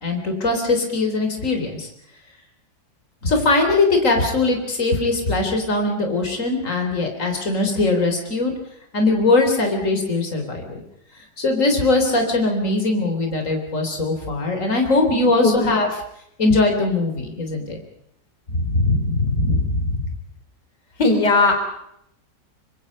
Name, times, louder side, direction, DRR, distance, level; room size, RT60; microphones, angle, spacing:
voice 1, 0.0-1.9 3.2-8.5 8.9-10.8 11.4-15.9 16.4-17.8 18.5-20.0, left 2 dB, 50° left, 4 dB, 4.2 m, -20 dB
voice 2, 15.1-15.9 21.0-21.6, left 3 dB, 80° left, 6 dB, 4.4 m, -19 dB
25.0 x 25.0 x 5.4 m, 0.75 s
omnidirectional pair, 1.8 m